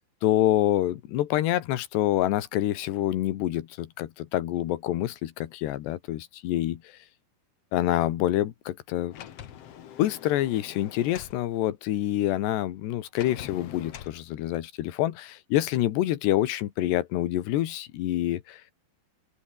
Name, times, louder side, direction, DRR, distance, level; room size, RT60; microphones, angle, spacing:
voice 1, 0.2-6.8 7.7-9.2 10.0-18.6, left 13 dB, 85° left, 3.6 m, -27 dB
Sliding door, 9.1-11.4 13.1-14.2, left 10 dB, 60° left, 1.6 m, -43 dB
omnidirectional pair, 4.7 m